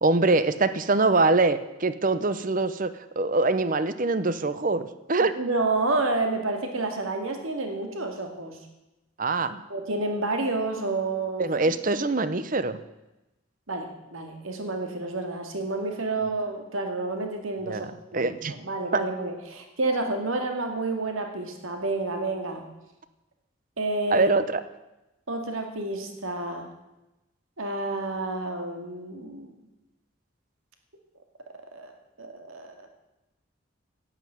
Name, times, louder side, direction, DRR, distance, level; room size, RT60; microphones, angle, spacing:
voice 1, 0.0-5.3 9.2-9.6 11.4-12.8 17.7-17.9 18.1-18.5 18.9-19.0 24.1-24.6, right 3 dB, 40° right, 13 dB, 0.7 m, -24 dB
voice 2, 5.4-8.7 9.7-11.5 13.7-18.4 18.6-22.7 23.8-24.3 25.3-26.7 27.6-29.6 31.7-31.9 32.2-32.9, right 2 dB, 80° right, 4 dB, 2.2 m, -29 dB
11.0 x 8.5 x 9.4 m, 0.99 s
head